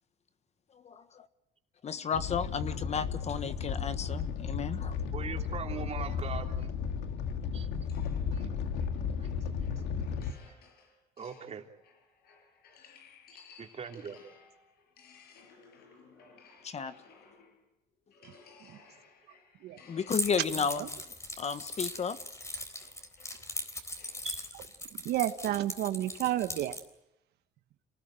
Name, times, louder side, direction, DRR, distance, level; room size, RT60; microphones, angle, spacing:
voice 1, 0.8-1.3 1.8-5.0 16.6-16.9 19.9-20.8 21.4-22.2, left 6 dB, 40° left, 12 dB, 1.4 m, -33 dB
Animal, 2.1-10.3, left 6 dB, 90° left, 2.1 m, -34 dB
voice 2, 5.1-6.7 7.5-7.7 8.3-8.5 9.2-9.3 11.2-11.6 13.3-14.2 24.2-24.4, right 6 dB, 40° right, 3 dB, 3.3 m, -40 dB
sound 1, 7.9-17.7 18.1-24.3, left 5 dB, 70° left, 6.3 m, -59 dB
Keys jangling, 20.1-26.8, left 2 dB, 15° left, 4.0 m, -39 dB
voice 3, 24.9-26.8, right 13 dB, 75° right, 9 dB, 1.3 m, -31 dB
27.5 x 19.5 x 9.1 m, 0.84 s
cardioid pair, 110°, 17 cm